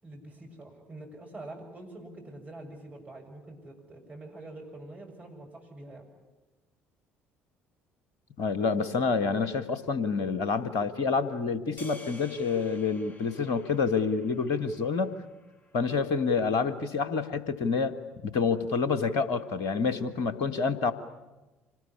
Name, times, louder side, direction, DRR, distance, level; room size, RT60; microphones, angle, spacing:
voice 1, 0.0-6.1, right 2 dB, 25° right, 1 dB, 7.1 m, -45 dB
voice 2, 8.4-15.2 15.7-17.9 18.2-20.9, left 5 dB, 60° left, 13 dB, 1.5 m, -28 dB
sound 1, 11.8-16.1, left 1 dB, 25° left, 3.2 m, -51 dB
25.5 x 19.0 x 9.8 m, 1.1 s
figure-of-eight pair, 55°, 6 cm